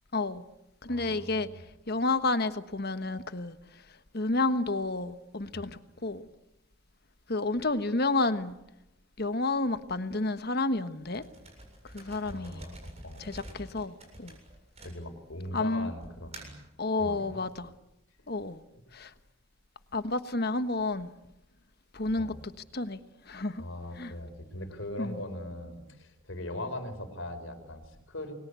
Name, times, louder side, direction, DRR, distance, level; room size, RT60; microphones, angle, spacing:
voice 1, 0.1-0.4 0.8-6.3 7.3-8.5 9.2-11.2 11.8-12.7 13.2-14.4 15.5-15.9 16.8-17.7 18.3-18.6 18.9-19.1 19.9-21.1 21.9-22.3 22.7-23.6 24.0-24.1 25.0-25.2, left 2 dB, 45° left, 1.3 m, -31 dB
voice 2, 0.9-1.6 5.5-5.7 12.2-13.3 14.8-16.6 17.0-17.4 22.1-22.4 23.6-28.3, left 1 dB, 65° left, 4.6 m, -40 dB
sound 1, 11.1-15.4 16.0-16.7, right 1 dB, 30° right, 7.5 m, -48 dB
29.5 x 22.5 x 8.3 m
head